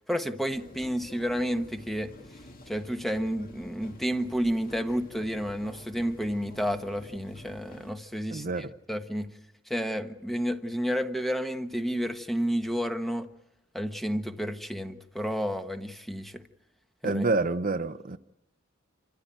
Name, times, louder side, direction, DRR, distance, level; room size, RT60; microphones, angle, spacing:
voice 1, 0.1-2.1 2.7-9.3 9.7-13.3 13.7-16.4 17.0-17.2, equal, ahead, 1.2 m, -31 dB
sound 1, 0.5-7.9, left 1 dB, 45° left, 2.0 m, -49 dB
voice 2, 8.3-8.7 17.0-18.2, right 3 dB, 45° right, 0.7 m, -28 dB
28.0 x 14.5 x 9.1 m
head